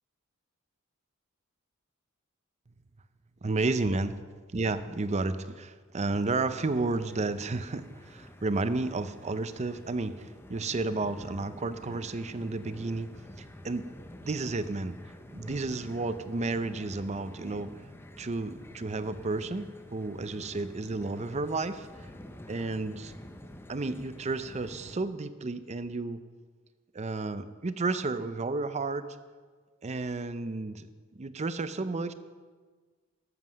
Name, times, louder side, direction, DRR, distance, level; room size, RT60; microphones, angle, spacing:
voice 1, 3.4-4.1 4.5-13.1 13.6-13.9 14.2-15.0 15.3-17.7 18.2-21.9 22.5-23.1 23.7-26.2 26.9-29.1 29.8-30.9 31.2-32.1, right 3 dB, 35° right, 12 dB, 0.5 m, -32 dB
sound 1, 6.1-25.0, left 1 dB, 10° left, 0.6 m, -48 dB
13.0 x 7.6 x 6.2 m, 1.5 s
head